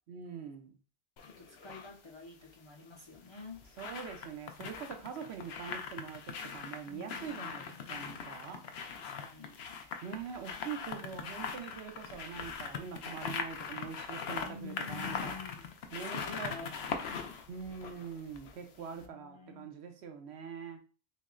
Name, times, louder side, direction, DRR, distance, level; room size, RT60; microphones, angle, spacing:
voice 1, 0.1-0.7 3.8-8.6 10.0-15.4 15.9-16.7 17.5-20.8, right 7 dB, 75° right, 5 dB, 0.9 m, -44 dB
sound 1, 1.2-1.9 3.1-18.7 19.0-19.1, left 6 dB, 70° left, 0.8 m, -41 dB
voice 2, 1.2-3.6 6.9-8.4 9.0-9.6 14.4-17.2 18.8-19.7, left 4 dB, 35° left, -1 dB, 0.5 m, -49 dB
6.1 x 2.0 x 2.5 m, 0.37 s
omnidirectional pair, 1.1 m